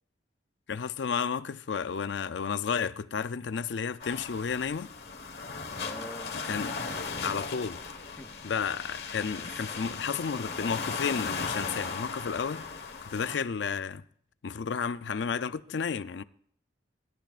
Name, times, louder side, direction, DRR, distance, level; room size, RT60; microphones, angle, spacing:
voice 1, 0.7-4.9 6.4-6.8 7.2-7.8 8.4-12.6 13.1-14.0 14.4-16.2, left 6 dB, 85° left, 0.5 m, -32 dB
sound 1, 4.0-13.4, left 4 dB, 60° left, 1.4 m, -37 dB
voice 2, 5.8-7.4 8.2-8.4 9.4-9.7, left 1 dB, 10° left, 0.5 m, -47 dB
26.5 x 12.5 x 2.5 m
head